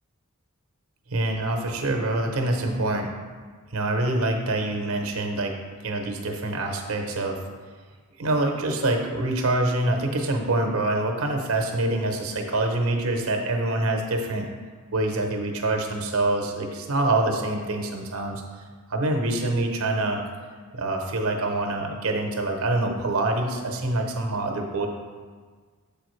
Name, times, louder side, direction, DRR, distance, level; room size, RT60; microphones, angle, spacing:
voice 1, 1.1-3.1 3.7-5.6 5.8-7.4 8.2-14.5 14.9-18.4 18.9-20.2 20.7-24.9, right 2 dB, 85° right, 3 dB, 0.8 m, -25 dB
6.9 x 4.8 x 3.2 m, 1.5 s
head